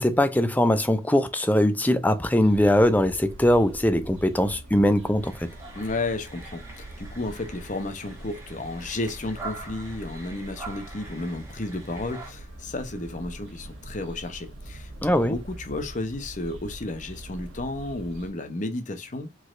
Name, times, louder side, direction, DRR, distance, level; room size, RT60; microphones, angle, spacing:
voice 1, 0.0-5.5 15.0-15.3, left 1 dB, 10° left, 0.4 m, -21 dB
sound 1, 2.4-18.3, right 1 dB, 80° right, 1.5 m, -43 dB
sound 2, 5.2-12.3, right 3 dB, 15° right, 1.4 m, -44 dB
voice 2, 5.8-14.9 15.3-19.3, left 2 dB, 35° left, 0.7 m, -32 dB
4.9 x 4.0 x 2.5 m
head